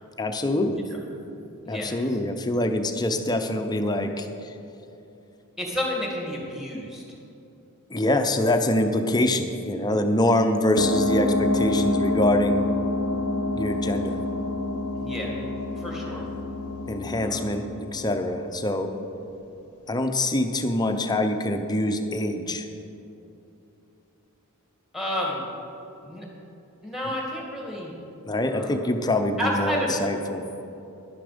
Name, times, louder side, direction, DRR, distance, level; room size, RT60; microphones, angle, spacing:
voice 1, 0.2-0.8 1.6-4.5 7.9-12.7 13.5-14.2 16.9-17.6 17.9-18.9 19.9-22.7 28.3-30.4, left 1 dB, 20° left, 5 dB, 0.7 m, -25 dB
voice 2, 1.6-2.0 5.6-7.0 14.9-15.4 15.8-16.2 17.2-17.5 24.9-25.4 26.0-26.3 26.8-27.9 28.5-28.8 29.4-29.9, equal, ahead, -2 dB, 2.1 m, -30 dB
sound 1, 10.8-18.9, left 2 dB, 70° left, 0.8 m, -27 dB
11.5 x 9.9 x 5.1 m, 2.8 s
head